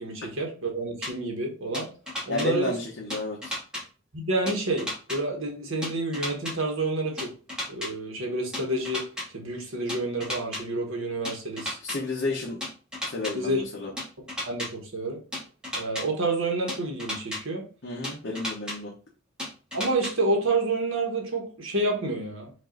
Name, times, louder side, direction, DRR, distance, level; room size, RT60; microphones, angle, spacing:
voice 1, 0.0-1.9 2.3-2.7 4.1-7.3 7.7-9.1 9.3-11.8 13.3-13.6 14.5-15.2 15.7-17.6 19.7-22.5, right 2 dB, 70° right, 1.3 m, -29 dB
sound 1, 1.0-1.1 1.7-2.5 3.1-3.8 4.5-5.2 5.8-6.5 7.2-7.9 8.5-9.3 9.9-10.6 11.2-12.0 12.6-13.3 14.0-14.7 15.3-16.0 16.7-17.4 18.0-18.8 19.4-20.1, left 1 dB, 5° right, 1.2 m, -33 dB
voice 2, 2.3-3.5 11.8-12.6 13.1-13.9 17.8-18.9, left 2 dB, 55° left, 0.9 m, -31 dB
5.3 x 2.6 x 3.8 m
head